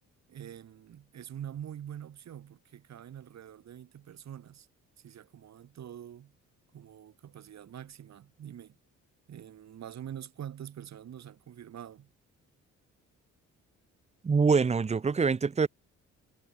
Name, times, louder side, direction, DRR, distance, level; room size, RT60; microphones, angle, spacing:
voice 1, 0.3-4.7 5.0-6.3 6.7-8.8 9.3-12.1, right 10 dB, 60° right, 3.3 m, -45 dB
voice 2, 14.2-15.7, right 5 dB, 20° right, 0.7 m, -24 dB
cardioid pair, 90°, 30 cm